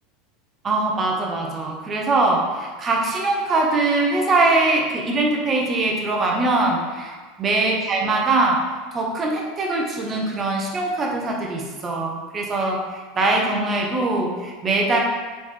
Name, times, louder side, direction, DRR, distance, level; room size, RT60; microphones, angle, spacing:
voice 1, 0.6-7.1 7.4-15.0, right 2 dB, 25° right, 0 dB, 0.7 m, -22 dB
4.1 x 3.4 x 3.3 m, 1.4 s
supercardioid pair, 140°, 0 cm